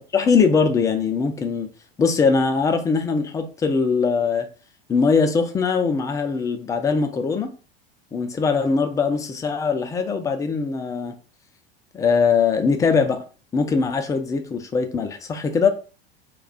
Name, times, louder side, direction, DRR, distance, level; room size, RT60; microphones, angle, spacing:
voice 1, 0.1-1.7 2.0-4.5 4.9-7.5 8.1-11.1 11.9-13.2 13.5-15.7, left 5 dB, 10° left, 6 dB, 0.4 m, -21 dB
2.3 x 2.2 x 3.8 m, 0.37 s
figure-of-eight pair, 80°, 30 cm